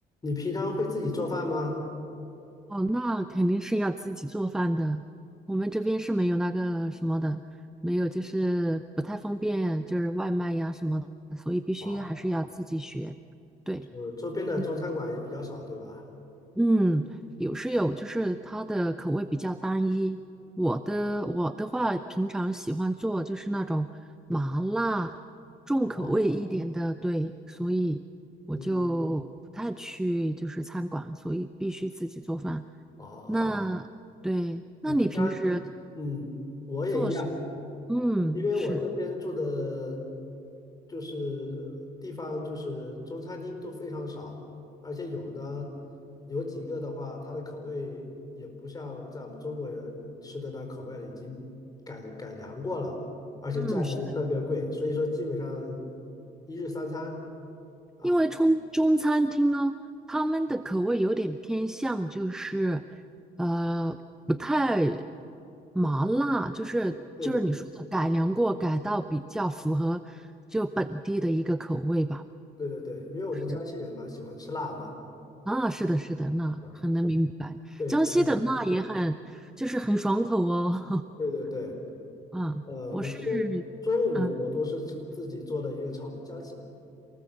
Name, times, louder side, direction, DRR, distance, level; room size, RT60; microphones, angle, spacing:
voice 1, 0.2-1.8 11.8-12.3 13.9-16.0 25.8-26.2 28.5-28.7 33.0-33.5 34.8-35.4 35.9-36.3 36.7-37.3 38.3-40.0 40.9-44.4 44.8-45.8 46.3-48.1 48.4-51.5 51.9-53.0 53.4-55.9 56.5-57.2 58.0-58.2 67.2-67.5 72.6-74.9 76.6-76.8 77.8-78.4 81.2-81.8 82.7-83.6 83.8-86.5, left 2 dB, 20° left, 3 dB, 4.8 m, -33 dB
voice 2, 2.7-5.0 5.5-7.4 7.8-13.1 13.7-13.9 16.6-17.1 17.4-20.2 20.6-23.9 24.3-25.1 25.7-28.0 28.5-32.6 33.3-33.9 34.2-35.6 36.9-37.2 37.9-38.8 53.5-53.9 58.0-59.8 60.1-62.8 63.4-64.0 64.3-65.0 65.7-72.2 75.5-81.0 82.3-82.6 82.9-83.6 84.2-84.3, right 1 dB, 5° right, 11 dB, 0.6 m, -28 dB
27.5 x 20.0 x 7.5 m, 2.7 s
cardioid pair, 110°, 17 cm